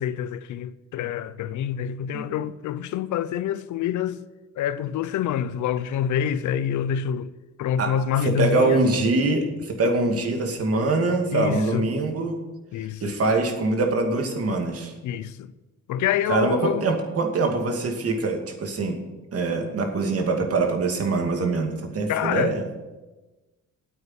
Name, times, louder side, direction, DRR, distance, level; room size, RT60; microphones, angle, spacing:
voice 1, 0.0-4.2 4.6-7.3 7.6-8.8 11.3-11.9 12.7-13.2 15.0-15.5 15.9-16.9 22.1-22.5, left 9 dB, 75° left, 0.7 m, -26 dB
voice 2, 8.2-12.4 13.0-14.9 16.3-19.0 19.3-22.6, right 3 dB, 50° right, 2.4 m, -23 dB
9.4 x 8.5 x 8.0 m
cardioid pair, 90°, 30 cm